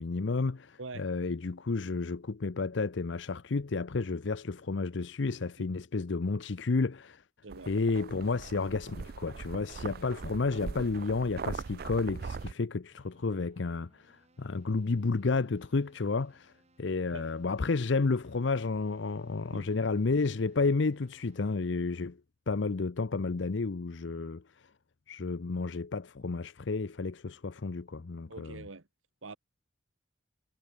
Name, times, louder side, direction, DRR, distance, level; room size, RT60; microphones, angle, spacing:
voice 1, 0.0-7.2 7.7-16.5 16.8-22.2 22.5-24.7 25.1-28.6, left 3 dB, 65° left, 0.6 m, -31 dB
sound 1, 7.5-12.5, right 5 dB, 50° right, 0.4 m, -41 dB
Keyboard (musical), 12.9-21.9, right 2 dB, 35° right, 7.7 m, -68 dB
voice 2, 28.3-28.9 29.2-29.4, right 3 dB, 80° right, 1.4 m, -44 dB
head